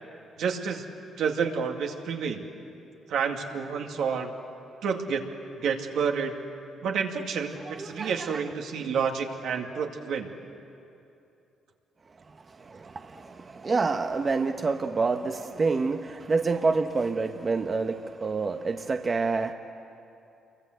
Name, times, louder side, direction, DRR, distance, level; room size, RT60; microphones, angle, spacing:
voice 1, 0.4-0.8 1.2-2.4 3.1-4.3 4.8-5.2 5.6-6.3 6.8-10.3, right 6 dB, 75° right, 2 dB, 2.3 m, -29 dB
voice 2, 7.8-8.4 12.6-19.5, right 4 dB, 35° right, 6 dB, 1.0 m, -28 dB
28.0 x 23.5 x 8.1 m, 2.7 s
cardioid pair, 90°, 0 cm